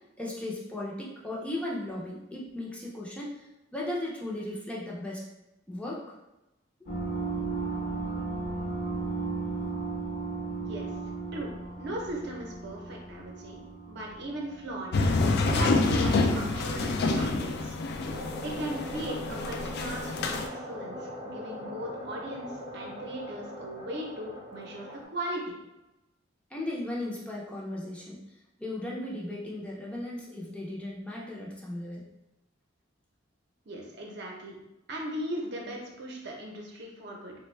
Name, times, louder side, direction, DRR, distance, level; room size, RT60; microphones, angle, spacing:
voice 1, 0.2-3.3 3.7-5.2 5.7-6.0 26.5-28.2 28.6-32.1, left 1 dB, 5° left, -4 dB, 0.5 m, -36 dB
sound 1, 6.9-16.0, right 3 dB, 40° left, 0.7 m, -35 dB
voice 2, 10.6-10.9 11.3-13.6 13.9-14.9 15.4-17.8 18.4-25.6 33.7-34.6 34.9-37.3, right 1 dB, 60° right, -1 dB, 0.7 m, -38 dB
sound 2, 14.9-20.5, left 3 dB, 60° left, 0.3 m, -27 dB
sound 3, 18.0-25.0, equal, 25° right, 0.7 m, -41 dB
3.4 x 2.2 x 3.1 m, 0.96 s
head